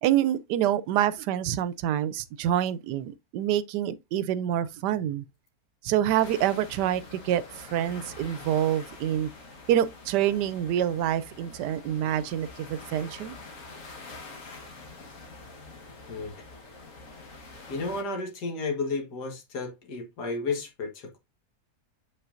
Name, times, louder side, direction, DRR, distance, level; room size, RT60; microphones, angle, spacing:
voice 1, 0.0-5.2 5.8-9.3 9.7-13.3, right 11 dB, 90° right, 1.2 m, -27 dB
sound 1, 6.2-18.0, left 3 dB, 50° left, 1.7 m, -46 dB
voice 2, 16.1-16.5 17.7-21.2, left 3 dB, 80° left, 2.0 m, -32 dB
7.5 x 5.5 x 2.5 m
omnidirectional pair, 1.7 m